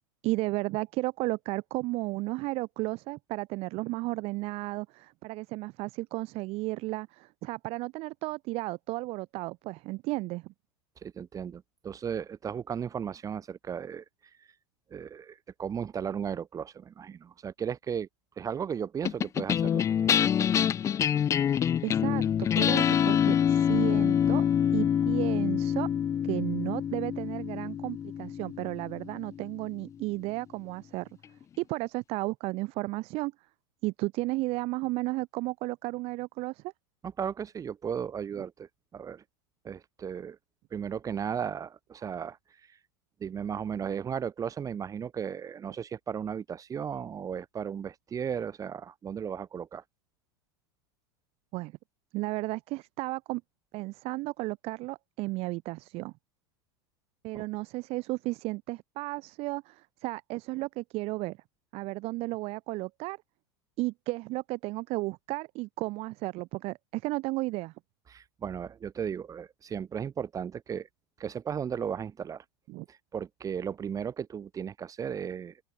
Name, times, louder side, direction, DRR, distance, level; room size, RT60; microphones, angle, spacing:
voice 1, 0.2-10.5 21.8-24.4 24.7-25.9 26.2-31.1 31.6-33.3 33.8-36.6 38.4-38.5 51.5-51.7 52.1-53.4 53.7-56.1 57.2-61.4 61.7-63.2 63.8-67.7 72.7-72.9, right 22 dB, 50° right, 1.1 m, -33 dB
voice 2, 11.0-14.0 14.9-18.1 18.4-20.5 37.0-38.7 38.9-39.2 39.6-40.4 40.7-42.4 43.2-49.8 57.3-57.4 68.1-70.9 71.2-72.4 72.9-75.5, right 7 dB, 25° right, 1.4 m, -35 dB
Electric guitar riff jingle, 19.0-29.6, left 9 dB, 25° left, 0.4 m, -26 dB
open air
hypercardioid pair, 100°, 13 cm